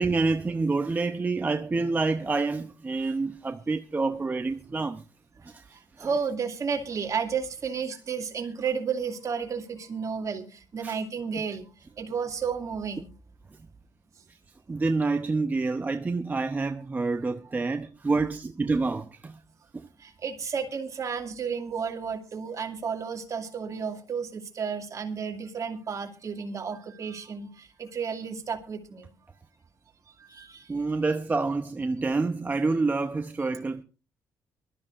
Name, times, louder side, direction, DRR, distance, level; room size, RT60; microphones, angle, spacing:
voice 1, 0.0-5.0 5.5-5.6 6.0-6.1 10.8-10.9 14.7-19.4 19.7-19.9 30.7-33.8, right 3 dB, 25° right, 0.8 m, -27 dB
voice 2, 6.0-10.5 10.7-11.7 12.0-13.1 20.0-29.1 30.3-30.6, right 6 dB, 45° right, 2.3 m, -32 dB
24.0 x 13.0 x 2.5 m
cardioid pair, 100°, 8 cm